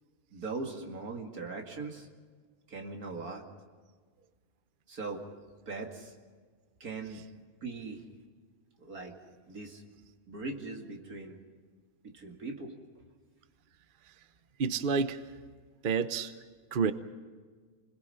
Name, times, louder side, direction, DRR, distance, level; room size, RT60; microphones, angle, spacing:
voice 1, 0.3-2.1 2.7-3.4 4.9-5.2 5.7-6.2 6.8-7.2 7.6-8.0 8.8-9.1 9.5-9.8 10.3-11.4 12.0-12.7, right 3 dB, 80° right, 2 dB, 2.8 m, -40 dB
voice 2, 14.6-15.2 15.8-16.3 16.7-16.9, right 5 dB, 40° right, 11 dB, 0.9 m, -29 dB
29.5 x 21.0 x 5.7 m, 1.5 s
omnidirectional pair, 1.5 m